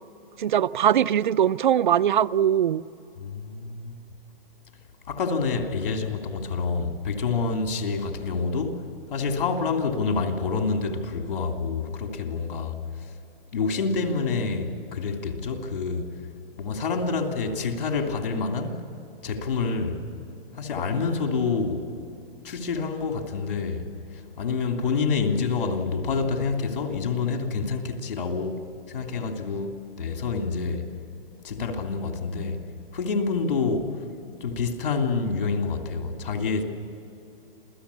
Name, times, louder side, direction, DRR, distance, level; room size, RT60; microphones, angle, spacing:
voice 1, 0.4-2.8, right 10 dB, 55° right, 0.5 m, -21 dB
voice 2, 3.2-4.0 5.1-13.1 13.5-16.1 16.6-18.8 19.2-20.1 20.5-21.9 22.4-23.9 24.1-30.8 31.4-32.6 32.9-34.0 34.4-36.6, left 4 dB, 65° left, 3.2 m, -27 dB
28.0 x 17.0 x 8.5 m
hypercardioid pair, 180°, 29 cm